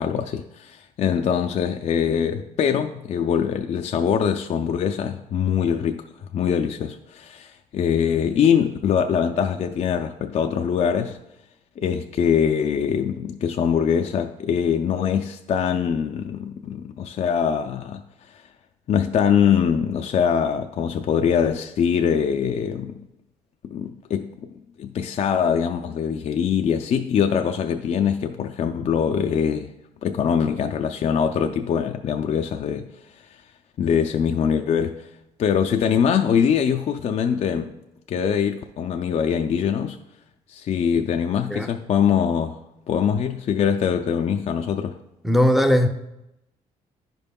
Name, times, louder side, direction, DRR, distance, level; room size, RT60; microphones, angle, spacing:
voice 1, 0.0-6.0 6.3-11.2 11.8-18.4 18.9-23.0 23.6-29.7 30.0-32.9 33.8-35.1 35.4-37.7 38.1-40.0 40.5-42.6 42.9-45.0, left 7 dB, 50° left, 0.4 m, -23 dB
voice 2, 45.2-45.9, equal, ahead, 0.6 m, -18 dB
10.0 x 5.3 x 2.2 m
cardioid pair, 80°, 15 cm